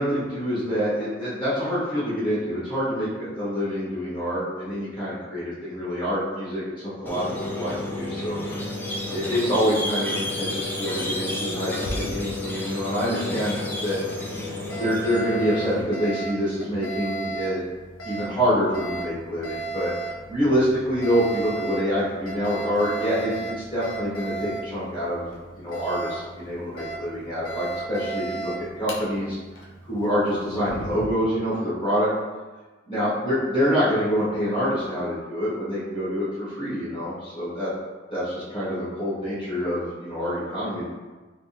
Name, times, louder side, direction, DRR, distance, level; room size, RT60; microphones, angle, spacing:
voice 1, 0.0-8.4 9.1-14.0 14.8-17.6 18.0-19.9 20.3-25.3 25.5-29.4 29.9-32.1 32.9-37.7 38.1-40.8, equal, 30° left, -10 dB, 1.3 m, -26 dB
Squeak, 7.1-15.8, left 2 dB, 10° left, 0.5 m, -31 dB
Alarm, 11.7-31.1, right 3 dB, 75° left, 0.6 m, -36 dB
3.4 x 2.9 x 2.8 m, 1.3 s
head